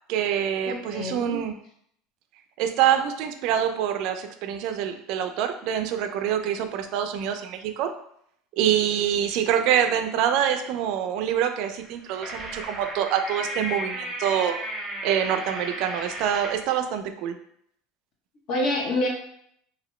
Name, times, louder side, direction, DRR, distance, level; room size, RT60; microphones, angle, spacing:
voice 1, 0.1-1.5 2.6-7.9 8.5-14.6 15.0-17.4, right 9 dB, 55° right, 7 dB, 0.3 m, -25 dB
voice 2, 0.7-1.4 18.5-19.1, left 1 dB, 50° left, -1 dB, 1.0 m, -27 dB
sound 1, 11.8-16.7, right 1 dB, 10° right, 0.9 m, -34 dB
2.9 x 2.6 x 3.0 m, 0.68 s
cardioid pair, 150°, 0 cm